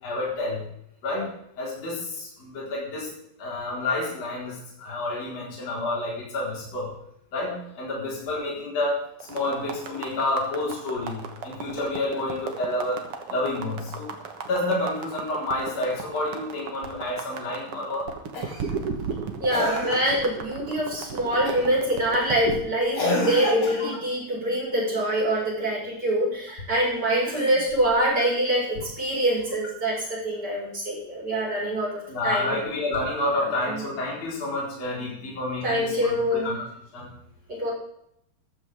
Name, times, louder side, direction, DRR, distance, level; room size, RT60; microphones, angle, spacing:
voice 1, 0.0-0.6 1.0-1.3 1.6-3.1 3.4-6.9 7.3-9.0 9.3-14.1 14.5-18.1 32.1-36.6 36.9-37.1, left 2 dB, 40° left, -5 dB, 5.2 m, -29 dB
sound 1, 9.2-22.6, right 6 dB, 75° right, 1.3 m, -35 dB
Cough, 18.3-18.7 19.5-20.3 21.5-21.8 22.9-24.0 27.1-27.9 29.4-29.5, left 2 dB, 60° left, 5.6 m, -29 dB
voice 2, 19.4-32.6 33.7-33.8 35.6-36.5 37.5-37.7, right 1 dB, 25° right, -5 dB, 5.6 m, -25 dB
14.5 x 13.0 x 3.6 m, 0.73 s
omnidirectional pair, 4.8 m